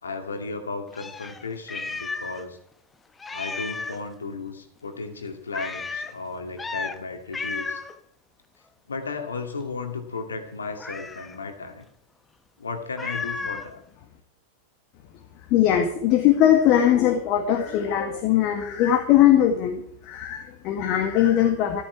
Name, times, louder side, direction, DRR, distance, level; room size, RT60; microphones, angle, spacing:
voice 1, 0.0-2.6 3.3-7.8 8.9-11.8 12.6-13.8, left 4 dB, 70° left, 6 dB, 2.4 m, -34 dB
Meow, 0.9-2.4 2.7-2.8 3.2-4.1 5.5-6.1 6.6-7.0 7.3-7.9 10.8-11.4 13.0-13.7, left 4 dB, 15° left, 1.0 m, -33 dB
voice 2, 15.5-21.8, left 11 dB, 40° left, 5 dB, 1.6 m, -20 dB
14.0 x 13.5 x 4.7 m, 0.69 s
figure-of-eight pair, 90°, 0 cm